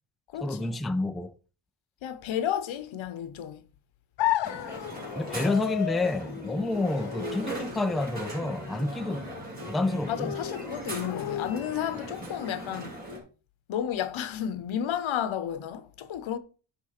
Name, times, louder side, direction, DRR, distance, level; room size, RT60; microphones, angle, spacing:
voice 1, 0.4-1.4 5.2-9.3 9.6-10.4, left 2 dB, ahead, 0.4 m, -29 dB
voice 2, 2.0-3.6 10.1-13.0 13.7-16.4, left 9 dB, 85° left, 1.0 m, -32 dB
sound 1, 4.2-12.1, left 14 dB, 65° left, 0.5 m, -35 dB
Crowd, 4.4-13.2, right 1 dB, 20° right, 3.9 m, -39 dB
9.8 x 3.6 x 5.8 m
wide cardioid pair, 120°, 46 cm